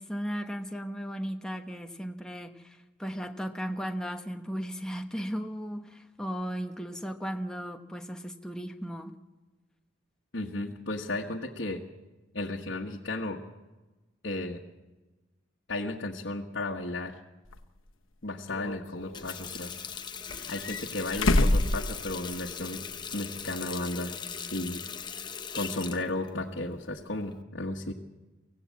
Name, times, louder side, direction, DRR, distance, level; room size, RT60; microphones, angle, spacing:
voice 1, 0.0-9.2, equal, 5° left, 4 dB, 1.1 m, -36 dB
voice 2, 10.3-11.8 12.3-13.4 14.2-14.6 15.7-17.2 18.2-19.7 20.5-22.8 23.1-24.1 24.5-24.8 25.5-27.9, left 2 dB, 60° left, -1 dB, 1.5 m, -34 dB
sound 1, 17.5-17.6 18.5-19.4 20.3-22.6 22.9-23.0 24.6-24.7, left 2 dB, 85° left, 1.1 m, -28 dB
Water tap faucet, 18.9-27.4, left 6 dB, 20° left, 0.8 m, -40 dB
24.0 x 16.5 x 8.5 m, 1.2 s
head